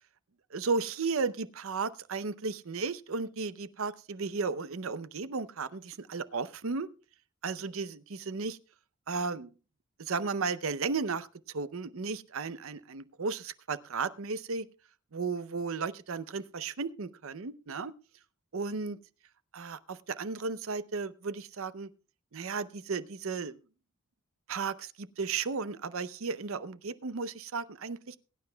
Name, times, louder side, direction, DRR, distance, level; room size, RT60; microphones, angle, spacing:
voice 1, 0.5-6.9 7.4-8.6 9.1-9.5 10.0-14.7 15.1-17.9 18.5-19.0 19.5-21.9 22.3-23.6 24.5-28.2, right 4 dB, 70° right, 15 dB, 0.6 m, -34 dB
22.0 x 9.7 x 2.2 m, 0.34 s
head